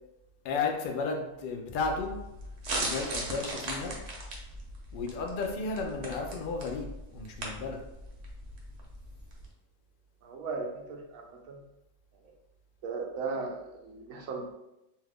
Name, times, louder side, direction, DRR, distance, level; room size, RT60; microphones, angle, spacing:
voice 1, 0.4-2.1 2.8-3.9 4.9-6.9 7.1-7.8, left 4 dB, 60° left, 2 dB, 0.5 m, -33 dB
sound 1, 1.8-9.5, right 1 dB, 60° right, 0.9 m, -38 dB
voice 2, 10.2-11.6 12.2-12.3 12.8-14.5, right 4 dB, 85° right, 2 dB, 1.0 m, -37 dB
2.7 x 2.4 x 3.5 m, 0.90 s
omnidirectional pair, 1.4 m